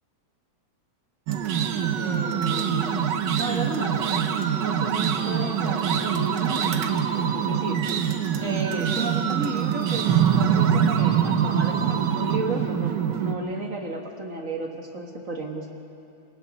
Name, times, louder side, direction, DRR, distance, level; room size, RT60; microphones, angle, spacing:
sound 1, 1.3-13.3, right 8 dB, 90° right, 0.9 m, -24 dB
voice 1, 2.0-4.3 4.6-7.1 7.3-7.8 8.4-15.8, right 2 dB, 40° right, 2 dB, 1.2 m, -33 dB
27.5 x 25.0 x 4.1 m, 2.5 s
omnidirectional pair, 3.3 m